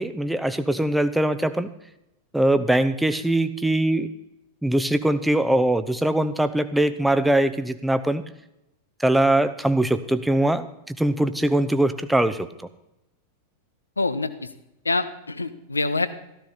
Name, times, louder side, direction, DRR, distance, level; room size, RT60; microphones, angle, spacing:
voice 1, 0.0-1.7 2.3-4.1 4.6-8.2 9.0-12.7, right 1 dB, 5° right, 11 dB, 0.8 m, -22 dB
voice 2, 14.0-14.5 14.8-16.1, left 3 dB, 80° left, 12 dB, 0.8 m, -25 dB
14.0 x 13.5 x 4.2 m, 0.87 s
figure-of-eight pair, 90°, 0 cm